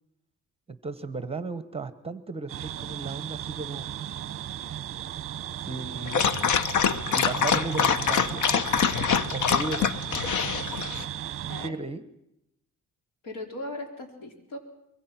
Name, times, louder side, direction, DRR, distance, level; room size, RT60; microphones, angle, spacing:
voice 1, 0.7-3.9 5.6-6.3 7.1-8.4 9.3-9.9 11.6-12.0, right 3 dB, 20° right, 12 dB, 1.1 m, -35 dB
sound 1, 2.5-11.7, right 11 dB, 40° right, 0.8 m, -35 dB
Dog, 6.1-11.0, left 7 dB, 65° left, 1.1 m, -25 dB
voice 2, 13.2-14.6, left 1 dB, 80° left, 4 dB, 4.4 m, -38 dB
24.5 x 23.0 x 6.0 m, 0.81 s
cardioid pair, 150°, 33 cm